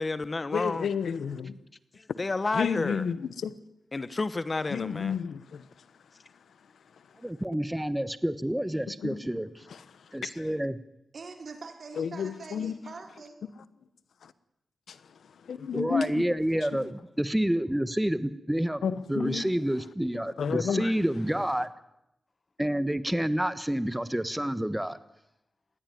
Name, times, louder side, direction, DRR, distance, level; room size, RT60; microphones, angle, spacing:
voice 1, 0.0-0.9 1.9-3.0 3.9-5.2, left 3 dB, 40° left, 1.0 m, -30 dB
voice 2, 0.5-1.6 2.1-2.2 2.5-3.5 4.7-5.7 8.9-9.2 9.7-10.5 12.0-12.8 14.2-14.3 14.9-15.0 15.4-16.3 16.8-16.9 18.8-19.5 20.1-21.0, left 7 dB, 90° left, 1.0 m, -32 dB
voice 3, 7.2-9.5 10.1-10.8 15.7-21.7 22.6-25.0, right 1 dB, 10° right, 1.2 m, -29 dB
voice 4, 11.1-13.4, right 4 dB, 65° right, 3.9 m, -43 dB
20.0 x 16.0 x 9.4 m
cardioid pair, 60°, 0 cm